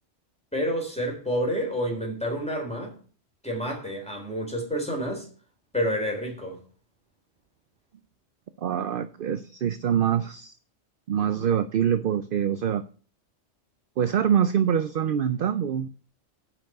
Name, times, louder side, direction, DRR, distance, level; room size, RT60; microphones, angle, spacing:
voice 1, 0.5-3.0 3.4-5.3 5.7-6.6, equal, 5° left, 3.9 m, -29 dB
voice 2, 8.6-10.5 11.1-12.8 14.0-15.9, right 9 dB, 55° right, 0.7 m, -25 dB
8.7 x 6.0 x 7.8 m
omnidirectional pair, 1.2 m